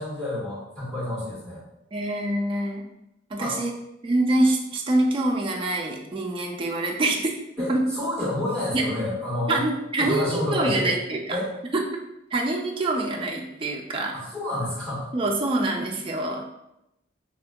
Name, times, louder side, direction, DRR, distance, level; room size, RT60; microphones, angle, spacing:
voice 1, 0.0-1.6 3.4-3.6 7.6-9.6 10.0-10.9 11.3-11.5 14.1-15.1, left 1 dB, 5° left, -9 dB, 1.3 m, -29 dB
voice 2, 1.9-2.9 3.3-3.7 4.0-7.3 7.7-7.8 8.7-8.8 9.5-11.2 11.7-11.9 12.3-14.1 15.1-16.4, right 2 dB, 25° right, 1 dB, 0.4 m, -25 dB
4.2 x 2.7 x 2.2 m, 0.85 s
head